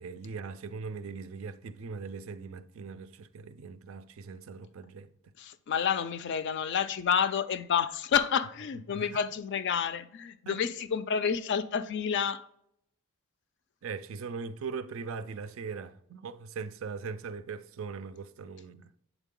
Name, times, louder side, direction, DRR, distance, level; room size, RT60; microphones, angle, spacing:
voice 1, 0.0-5.1 8.9-9.2 10.5-10.6 13.8-18.9, right 5 dB, 65° right, 0.4 m, -40 dB
voice 2, 5.4-12.5, left 7 dB, 55° left, 0.4 m, -29 dB
8.0 x 3.7 x 3.7 m
head